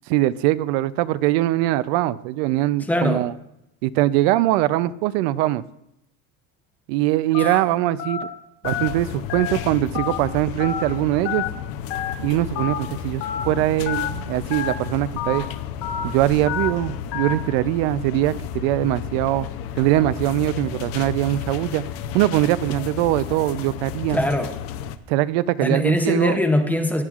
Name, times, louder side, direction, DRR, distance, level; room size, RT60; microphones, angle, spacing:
voice 1, 0.1-3.3 3.8-5.6 6.9-8.3 8.6-11.4 12.2-15.5 16.0-19.5 19.8-21.8 22.1-24.2 25.1-26.4, right 15 dB, 80° right, 16 dB, 0.5 m, -22 dB
voice 2, 2.9-3.3 24.1-24.5 25.6-27.0, left 1 dB, 5° left, 5 dB, 0.6 m, -21 dB
Telephone, 7.3-7.6 8.0-8.2 8.6-8.9 9.3-9.5 9.9-10.2 10.6-10.8 11.3-11.5 11.9-12.1 12.6-12.8 13.2-13.4 13.9-14.1 14.5-14.7 15.2-15.4 15.8-16.0 16.5-16.7 17.1-17.3, left 10 dB, 85° left, 1.5 m, -28 dB
sound 1, 8.6-25.0, left 9 dB, 45° left, 0.6 m, -33 dB
17.5 x 10.5 x 2.4 m, 0.82 s
cardioid pair, 170°, 32 cm